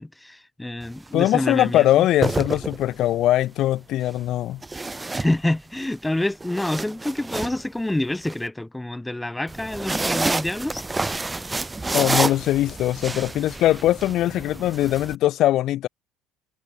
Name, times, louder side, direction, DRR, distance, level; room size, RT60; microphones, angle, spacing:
voice 1, 0.0-2.1 5.1-10.8, left 1 dB, 10° left, 7.2 m, -27 dB
sound 1, 0.8-1.1 2.0-3.1 4.6-5.8 6.2-8.3 9.5-15.1, right 3 dB, 20° right, 1.2 m, -29 dB
voice 2, 1.1-4.6 11.9-15.9, left 14 dB, 60° left, 0.7 m, -21 dB
hypercardioid pair, 65°, 0 cm